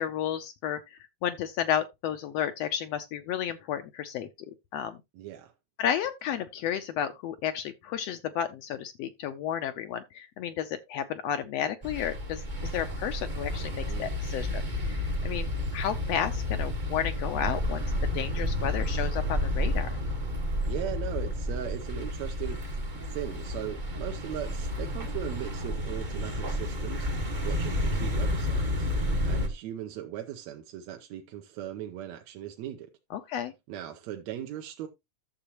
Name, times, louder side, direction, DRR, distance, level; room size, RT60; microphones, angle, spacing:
voice 1, 0.0-4.3 4.7-5.0 5.8-12.4 12.7-14.6 14.9-17.8 18.1-19.9 29.1-29.3 33.1-33.5, left 9 dB, 75° left, 1.6 m, -32 dB
voice 2, 5.1-5.5 13.9-14.2 20.7-22.6 23.0-32.9 33.7-34.9, right 11 dB, 75° right, 2.0 m, -38 dB
sound 1, 11.8-29.5, left 1 dB, 35° right, 0.7 m, -31 dB
11.5 x 7.2 x 2.9 m
omnidirectional pair, 3.3 m